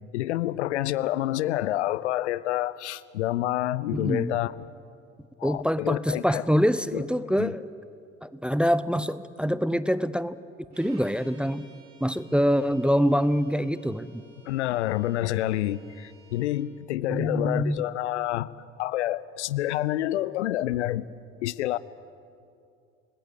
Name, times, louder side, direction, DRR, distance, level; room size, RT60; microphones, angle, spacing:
voice 1, 0.1-4.5 5.4-6.4 6.9-7.0 7.4-7.5 14.5-18.5 18.8-21.1 21.4-21.8, left 14 dB, 75° left, 19 dB, 0.7 m, -28 dB
voice 2, 3.9-4.4 5.4-7.6 8.2-10.4 10.7-11.7 12.0-14.2 17.1-17.9, equal, 5° right, 15 dB, 0.6 m, -25 dB
Bowed string instrument, 10.7-16.7, right 3 dB, 80° right, 3.9 m, -55 dB
28.5 x 19.5 x 8.2 m, 2.5 s
figure-of-eight pair, 65°, 35 cm